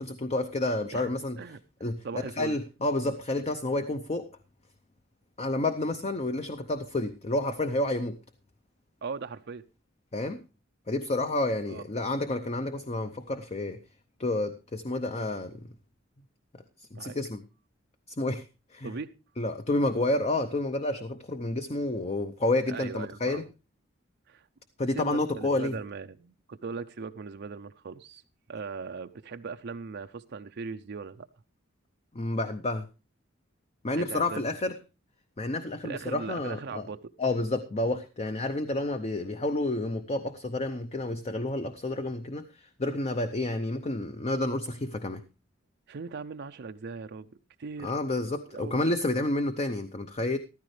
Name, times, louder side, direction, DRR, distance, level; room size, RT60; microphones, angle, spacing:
voice 1, 0.0-1.4 1.8-4.3 5.4-8.2 10.1-10.4 10.9-13.8 14.2-15.6 16.8-17.4 18.2-18.4 18.7-18.9 19.4-23.4 24.8-25.8 32.1-32.9 33.8-34.8 35.4-36.9 37.2-45.2 47.8-50.4, left 2 dB, 35° left, 0.7 m, -30 dB
voice 2, 2.0-2.6 9.0-9.6 11.7-11.8 16.9-17.2 18.8-19.1 22.7-23.5 24.3-24.5 24.9-28.2 28.5-31.3 33.9-34.4 35.8-37.1 45.9-47.3 47.6-47.9 48.5-48.8, right 5 dB, 55° right, 0.5 m, -39 dB
14.0 x 12.5 x 3.2 m
head